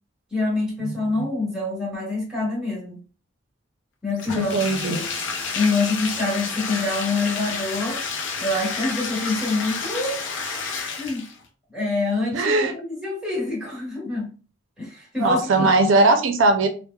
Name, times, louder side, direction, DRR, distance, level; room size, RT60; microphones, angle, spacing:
voice 1, 0.3-3.0 4.0-4.5 4.8-5.1 5.5-8.0 8.4-10.2 11.0-11.3 11.7-14.3 14.8-15.7, left 3 dB, 5° right, 1.3 m, -26 dB
voice 2, 0.8-1.3 4.4-5.0 12.3-12.7 15.2-16.7, right 2 dB, 75° right, 0.5 m, -20 dB
Bathtub (filling or washing), 4.2-11.4, left 5 dB, 70° left, 0.5 m, -30 dB
3.0 x 2.0 x 2.2 m
head